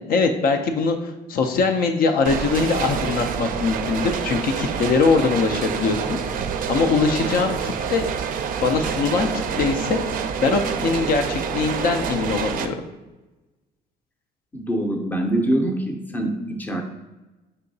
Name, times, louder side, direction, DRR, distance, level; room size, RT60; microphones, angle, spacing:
voice 1, 0.0-6.2 6.7-8.1 8.6-10.0 10.4-12.8, left 4 dB, 60° left, 5 dB, 0.4 m, -22 dB
sound 1, 2.2-12.7, right 7 dB, 55° right, 0.4 m, -27 dB
voice 2, 14.5-16.8, right 1 dB, 10° left, 4 dB, 0.5 m, -24 dB
5.4 x 2.8 x 2.7 m, 1.1 s
cardioid pair, 110°, 17 cm